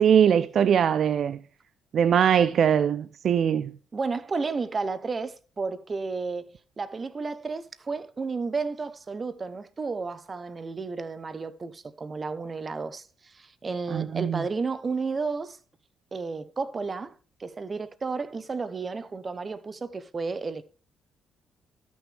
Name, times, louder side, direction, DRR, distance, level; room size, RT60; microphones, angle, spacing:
voice 1, 0.0-1.4 1.9-3.7 13.9-14.4, right 8 dB, 60° right, 0.4 m, -21 dB
voice 2, 3.9-15.6 16.1-20.6, right 4 dB, 35° right, 0.9 m, -32 dB
13.0 x 6.2 x 3.4 m
cardioid pair, 90°, 0 cm